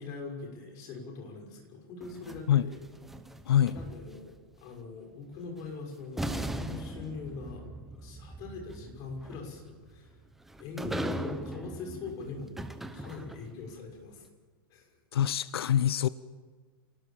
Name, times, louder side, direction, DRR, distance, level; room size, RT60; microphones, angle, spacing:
voice 1, 0.0-2.8 3.7-7.6 8.0-10.2 10.6-12.6 12.9-14.3 14.7-15.0, left 4 dB, 30° left, 2 dB, 6.1 m, -42 dB
sound 1, 2.0-4.4 5.6-5.7 6.2-13.6, right 1 dB, ahead, 0.8 m, -39 dB
voice 2, 3.5-3.8 15.1-16.1, left 10 dB, 85° left, 16 dB, 0.8 m, -25 dB
27.5 x 19.5 x 7.5 m, 1.4 s
supercardioid pair, 165°, 13 cm